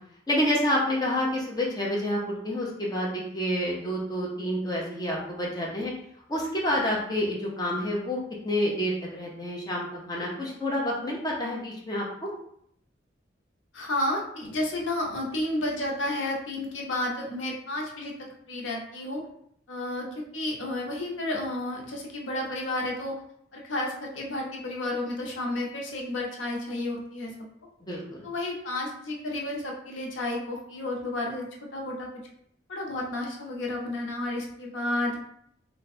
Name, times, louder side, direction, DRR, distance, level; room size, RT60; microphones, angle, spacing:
voice 1, 0.3-5.9 6.3-12.3 27.8-28.2, left 1 dB, 20° left, -4 dB, 0.7 m, -28 dB
voice 2, 13.7-19.2 19.7-23.2 23.5-27.3 28.2-32.1 32.7-35.2, left 1 dB, 90° left, -1 dB, 0.8 m, -31 dB
3.2 x 2.3 x 4.1 m, 0.69 s
head